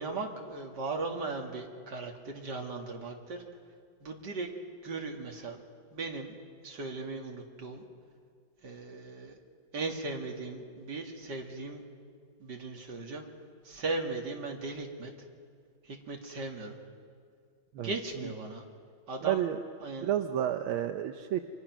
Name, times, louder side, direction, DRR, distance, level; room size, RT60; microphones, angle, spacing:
voice 1, 0.0-3.4 4.0-4.5 4.8-5.6 5.9-6.4 6.6-7.8 8.6-9.4 9.7-11.8 12.4-13.3 13.6-15.1 15.8-16.8 17.8-18.6 19.1-19.4 19.8-20.1, right 3 dB, 55° right, 1 dB, 3.0 m, -37 dB
voice 2, 19.2-19.6 20.0-21.4, right 11 dB, 85° right, 7 dB, 1.6 m, -30 dB
28.5 x 25.0 x 6.1 m, 2.1 s
omnidirectional pair, 2.2 m